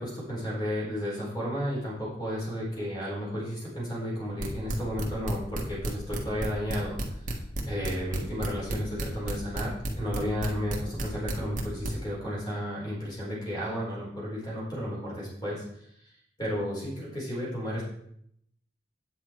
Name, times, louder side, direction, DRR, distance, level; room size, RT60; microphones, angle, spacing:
voice 1, 0.0-7.2 7.7-16.1 16.4-17.8, equal, 25° left, -5 dB, 4.7 m, -33 dB
sound 1, 4.4-11.9, right 1 dB, 45° right, 1.6 m, -31 dB
9.3 x 8.0 x 4.6 m, 0.72 s
head